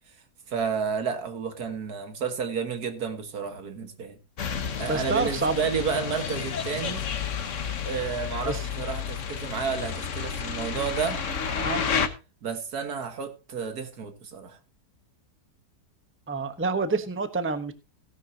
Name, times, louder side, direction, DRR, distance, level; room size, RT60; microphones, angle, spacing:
voice 1, 0.5-4.2 4.8-7.0 7.8-11.2 12.4-14.6, right 6 dB, 70° right, 2.0 m, -31 dB
sound 1, 4.4-12.1, left 6 dB, 55° left, 1.4 m, -31 dB
voice 2, 4.9-5.6 8.4-8.7 11.6-11.8 16.3-17.7, right 4 dB, 10° right, 0.9 m, -27 dB
16.5 x 10.5 x 2.8 m
omnidirectional pair, 1.7 m